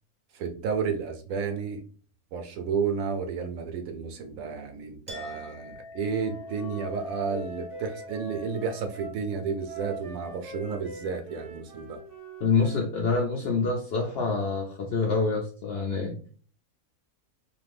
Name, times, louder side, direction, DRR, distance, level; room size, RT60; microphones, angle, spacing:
voice 1, 0.3-1.8 2.3-12.0, right 5 dB, 70° right, 0.9 m, -32 dB
Chink clink, 5.1-12.1, left 3 dB, 10° right, 0.4 m, -45 dB
Wind instrument woodwind instrument, 6.1-9.2 9.6-12.9, right 4 dB, 45° right, 0.9 m, -43 dB
voice 2, 12.4-16.3, left 4 dB, 70° left, 0.6 m, -26 dB
2.7 x 2.4 x 3.3 m
omnidirectional pair, 1.6 m